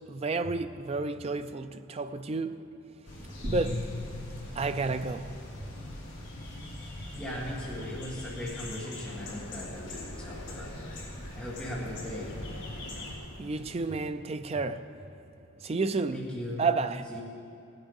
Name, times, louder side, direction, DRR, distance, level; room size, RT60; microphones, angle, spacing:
voice 1, 0.1-2.7 3.4-3.9 4.5-5.3 13.4-14.9 15.6-16.3 16.6-17.2, right 3 dB, 30° right, 0.4 m, -31 dB
sound 1, 3.0-13.2, left 1 dB, 55° left, 2.9 m, -40 dB
voice 2, 7.2-11.0 11.4-12.3 16.1-16.6 17.1-17.2, left 1 dB, 5° left, 1.9 m, -38 dB
sound 2, 9.1-14.1, left 1 dB, 75° left, 1.1 m, -49 dB
18.0 x 8.0 x 5.4 m
head